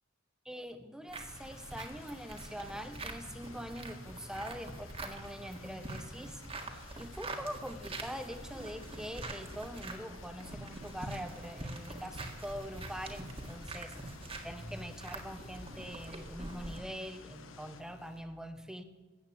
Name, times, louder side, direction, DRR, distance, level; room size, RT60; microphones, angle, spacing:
voice 1, 0.4-14.1 14.4-18.8, equal, 5° right, 8 dB, 0.9 m, -44 dB
sound 1, 1.1-16.8, right 2 dB, 30° right, 1.7 m, -45 dB
sound 2, 1.3-17.8, left 6 dB, 85° left, 0.9 m, -56 dB
sound 3, 8.2-18.2, left 1 dB, 35° left, 2.2 m, -56 dB
14.5 x 8.1 x 8.5 m, 1.2 s
head